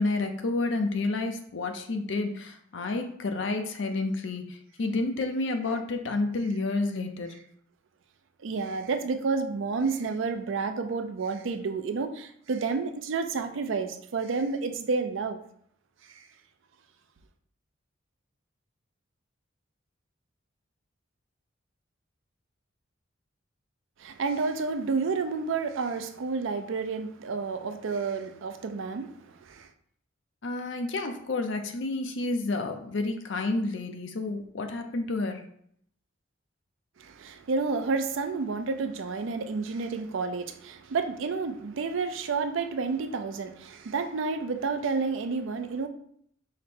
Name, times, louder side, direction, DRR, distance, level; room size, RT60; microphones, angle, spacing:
voice 1, 0.0-7.4 30.4-35.4, left 2 dB, 65° left, 0.5 m, -30 dB
voice 2, 8.4-15.4 16.1-16.3 24.0-29.7 37.0-45.9, right 4 dB, 70° right, 0.4 m, -30 dB
4.9 x 2.0 x 4.3 m
head